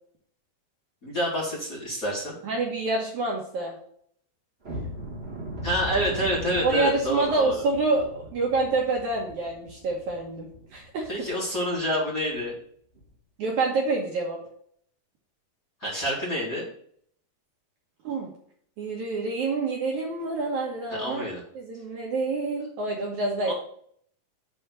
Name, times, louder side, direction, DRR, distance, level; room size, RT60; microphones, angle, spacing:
voice 1, 1.0-2.4 5.6-7.6 11.1-12.6 15.8-16.7 20.9-21.4 23.4-23.5, equal, 25° left, -6 dB, 2.8 m, -28 dB
voice 2, 2.4-3.7 6.6-11.1 13.4-14.4 18.0-18.3 18.8-21.3 21.5-23.5, right 3 dB, 60° right, -1 dB, 2.3 m, -27 dB
sound 1, 4.6-11.4 11.7-11.9 12.3-12.5 12.9-13.1, left 1 dB, 40° right, 0.8 m, -39 dB
7.6 x 4.3 x 6.7 m, 0.62 s
omnidirectional pair, 4.4 m